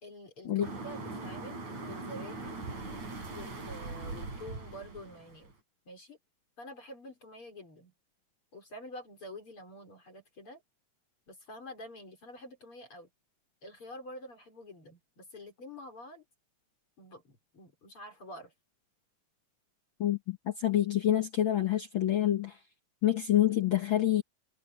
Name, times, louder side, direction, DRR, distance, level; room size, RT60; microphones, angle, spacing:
voice 1, 0.0-2.6 3.3-5.6 5.9-6.2 6.6-7.9 8.5-10.6 11.3-13.1 13.6-16.3 17.0-18.5, left 1 dB, 40° left, 5.3 m, -47 dB
sound 1, 0.6-5.5, right 3 dB, 55° right, 7.9 m, -41 dB
voice 2, 20.0-22.6 23.0-24.2, left 12 dB, 70° left, 1.2 m, -27 dB
omnidirectional pair, 3.9 m